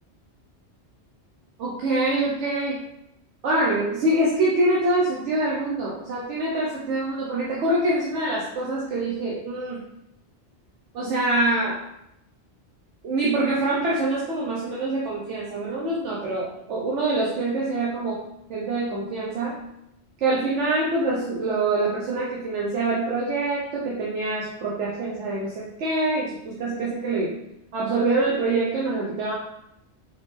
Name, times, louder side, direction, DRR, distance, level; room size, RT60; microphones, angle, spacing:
voice 1, 1.6-2.8 3.4-9.8 10.9-11.8 13.0-18.2 18.5-19.5 20.2-27.3 27.7-29.3, right 2 dB, 85° right, -5 dB, 1.1 m, -25 dB
4.0 x 3.4 x 3.2 m, 0.83 s
omnidirectional pair, 1.2 m